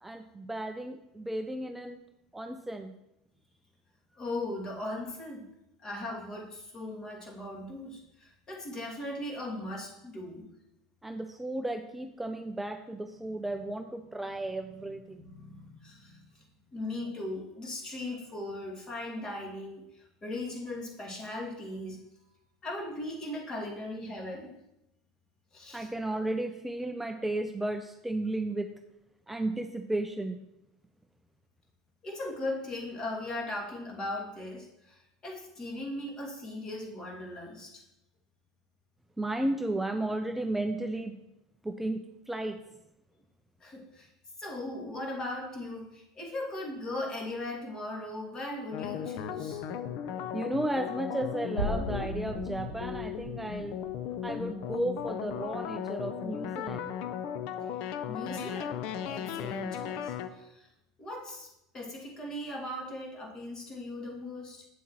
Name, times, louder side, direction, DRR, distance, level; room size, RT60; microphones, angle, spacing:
voice 1, 0.0-2.0 2.3-2.9 11.0-15.2 25.7-28.7 29.3-30.4 39.2-41.1 41.6-42.6 50.3-53.8 54.2-56.9, right 1 dB, 10° right, 7 dB, 0.4 m, -34 dB
voice 2, 4.1-5.4 5.8-10.5 13.5-13.6 14.4-14.9 15.2-16.5 16.7-22.0 22.6-24.5 25.5-25.9 32.0-37.8 43.6-44.1 44.4-49.6 57.6-60.7 61.0-61.5 61.7-64.7, left 1 dB, 30° left, 0 dB, 2.3 m, -38 dB
sound 1, 48.7-60.3, left 9 dB, 55° left, 0.6 m, -36 dB
sound 2, 51.6-55.5, right 1 dB, 85° left, 3.0 m, -38 dB
8.4 x 7.2 x 3.0 m, 0.87 s
hypercardioid pair, 80°, 2 cm